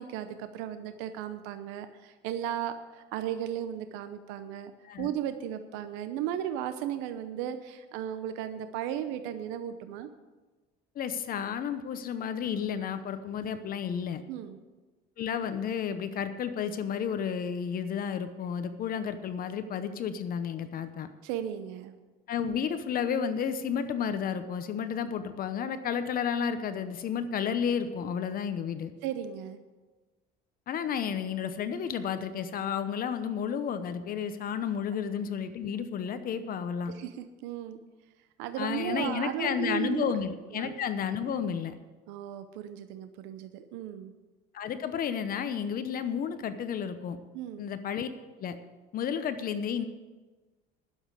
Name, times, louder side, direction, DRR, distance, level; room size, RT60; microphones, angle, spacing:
voice 1, 0.0-4.7 5.0-10.1 14.3-14.6 21.2-21.9 29.0-29.6 36.9-37.8 38.4-40.1 40.5-40.8 42.1-44.1 47.3-47.7, right 10 dB, 85° right, 10 dB, 0.8 m, -35 dB
voice 2, 10.9-14.2 15.2-21.1 22.3-28.9 30.7-36.9 38.6-41.8 44.5-47.2 47.6-48.1 48.4-48.6 48.9-49.8, left 7 dB, 50° left, 11 dB, 0.9 m, -32 dB
11.5 x 7.3 x 8.2 m, 1.3 s
cardioid pair, 110°, 19 cm